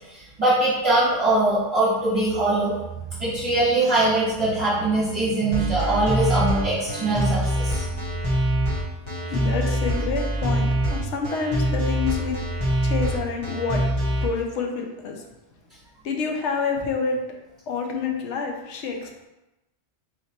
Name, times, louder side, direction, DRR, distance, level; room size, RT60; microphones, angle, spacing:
voice 1, 0.4-2.7 3.2-7.8, right 2 dB, 20° right, -13 dB, 1.4 m, -22 dB
sound 1, 5.5-14.2, right 1 dB, 25° left, 0.9 m, -24 dB
voice 2, 9.2-12.4 12.8-13.8 14.2-15.2 16.0-17.2 17.7-19.3, left 5 dB, 80° left, 2 dB, 0.9 m, -28 dB
3.1 x 3.0 x 4.2 m, 1.0 s
omnidirectional pair, 1.2 m